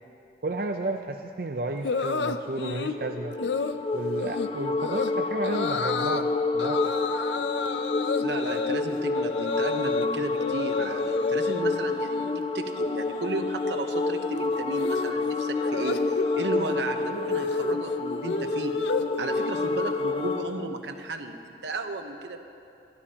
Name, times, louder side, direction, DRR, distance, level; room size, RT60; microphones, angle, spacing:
voice 1, 0.4-3.4 3.9-6.9, right 2 dB, 55° right, 4 dB, 0.5 m, -32 dB
sound 1, 1.8-3.0 3.4-3.8 4.2-4.5 4.8-5.1 5.4-6.2 6.6-10.1 10.3-11.6 12.0-12.4 12.6-20.8, left 4 dB, 85° left, 0.5 m, -32 dB
sound 2, 2.9-20.5, left 3 dB, 30° left, 0.3 m, -29 dB
voice 2, 8.2-16.0 16.4-18.8 19.2-22.4, right 2 dB, 80° right, 5 dB, 1.0 m, -34 dB
27.5 x 12.0 x 2.9 m, 2.7 s
head